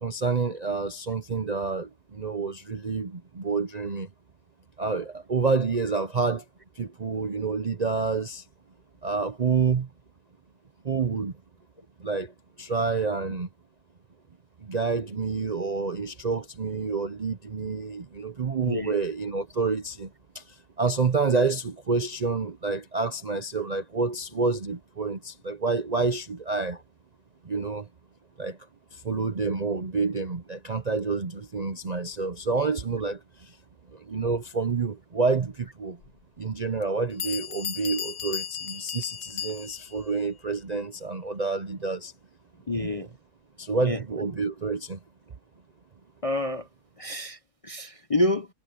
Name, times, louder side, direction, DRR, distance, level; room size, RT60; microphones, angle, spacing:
voice 1, 0.0-4.1 4.8-6.4 6.8-8.4 9.0-9.9 10.8-11.3 12.0-12.3 12.6-13.5 14.6-20.1 20.3-20.4 20.8-26.8 27.4-27.9 28.4-28.6 28.9-33.5 33.9-36.0 36.4-42.1 42.8-43.1 43.6-45.0, right 4 dB, 40° right, 0.6 m, -28 dB
voice 2, 18.7-19.0 42.7-43.1 43.8-44.0 46.2-46.7 47.0-47.4 47.6-48.5, left 1 dB, 30° left, 0.7 m, -27 dB
Bell, 36.0-36.1 36.8-36.9 37.2-40.0, left 8 dB, 65° left, 1.3 m, -35 dB
omnidirectional pair, 1.7 m